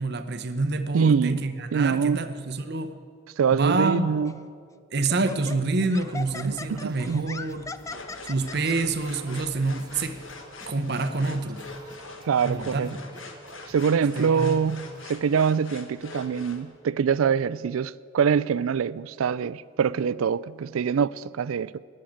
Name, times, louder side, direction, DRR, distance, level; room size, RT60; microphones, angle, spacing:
voice 1, 0.0-2.9 3.5-4.0 4.9-7.6 8.2-10.2 10.7-11.6 12.4-12.9 14.2-14.5, right 3 dB, 55° right, 0.8 m, -27 dB
voice 2, 0.9-1.4 1.7-2.2 3.4-4.3 6.4-7.4 12.3-12.9 13.7-21.8, right 6 dB, 90° right, 0.4 m, -24 dB
Laughter, 4.3-4.5 5.1-8.8, left 3 dB, 15° left, 0.3 m, -39 dB
Singing, 5.9-15.1, right 2 dB, 20° right, 1.1 m, -51 dB
sound 1, 7.8-16.6, left 3 dB, 70° left, 1.4 m, -43 dB
19.5 x 6.5 x 8.7 m
head